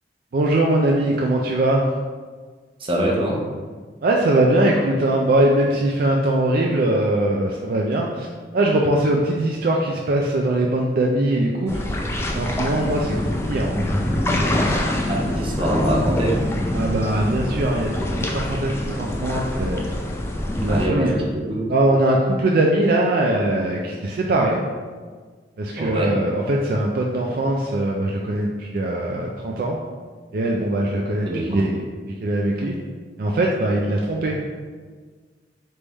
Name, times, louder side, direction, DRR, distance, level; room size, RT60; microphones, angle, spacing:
voice 1, 0.3-1.8 4.0-8.3 8.5-11.8 12.2-13.8 16.7-19.9 20.6-21.2 21.7-24.6 25.6-29.8 30.3-31.8 32.2-32.8 33.2-34.4, right 1 dB, 55° right, -1 dB, 0.4 m, -21 dB
voice 2, 2.8-3.4 15.1-16.4 20.7-21.7 25.8-26.1 31.2-31.6, right 1 dB, 30° right, -2 dB, 0.7 m, -24 dB
sound 1, 11.7-20.9, left 1 dB, 15° left, 0.3 m, -24 dB
3.4 x 3.4 x 4.0 m, 1.5 s
head